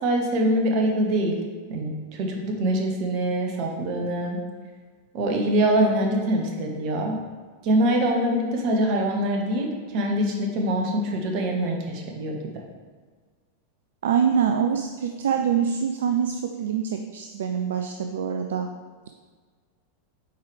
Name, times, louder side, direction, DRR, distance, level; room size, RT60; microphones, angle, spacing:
voice 1, 0.0-1.4 1.7-4.4 5.1-7.2 7.6-12.6, right 1 dB, 40° right, 2 dB, 1.2 m, -24 dB
voice 2, 14.0-18.7, right 7 dB, 60° right, 5 dB, 0.4 m, -25 dB
8.0 x 4.7 x 3.4 m, 1.5 s
figure-of-eight pair, 90°, 0 cm